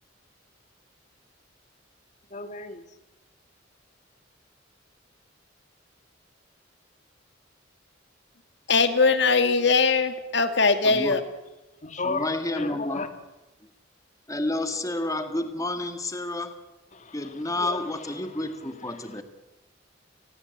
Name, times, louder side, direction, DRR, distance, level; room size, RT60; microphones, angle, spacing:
voice 1, 2.3-2.8 11.8-13.1 16.9-17.3 17.6-17.8, left 3 dB, 40° left, 2.3 m, -33 dB
voice 2, 8.7-11.2, left 4 dB, 60° left, 2.2 m, -21 dB
voice 3, 10.8-11.2 12.0-13.1 13.6-13.7 14.3-16.6 17.1-19.2, left 2 dB, 20° left, 1.8 m, -30 dB
30.0 x 21.0 x 8.2 m
head